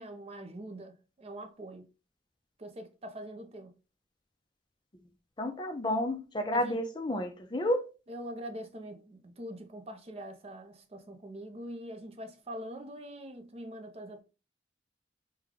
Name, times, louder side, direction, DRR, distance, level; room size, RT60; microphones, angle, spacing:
voice 1, 0.0-1.9 2.6-3.7 6.5-6.8 8.1-14.2, right 1 dB, 35° right, 0.5 m, -43 dB
voice 2, 5.4-7.8, left 1 dB, 25° left, 0.5 m, -31 dB
3.4 x 2.2 x 3.6 m
head